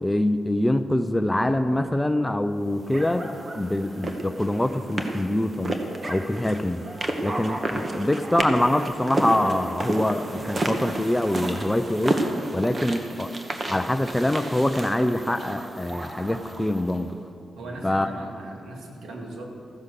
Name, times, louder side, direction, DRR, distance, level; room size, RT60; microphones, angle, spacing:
voice 1, 0.0-5.8 6.1-6.8 7.2-12.2 12.5-13.3 13.7-17.2 17.8-18.1, left 1 dB, 10° left, 10 dB, 0.6 m, -24 dB
sound 1, 2.9-17.0, right 2 dB, 30° right, 1.3 m, -32 dB
voice 2, 17.6-19.5, right 2 dB, 90° right, 0 dB, 2.3 m, -38 dB
14.5 x 10.5 x 6.6 m, 2.6 s
cardioid pair, 110°, 0 cm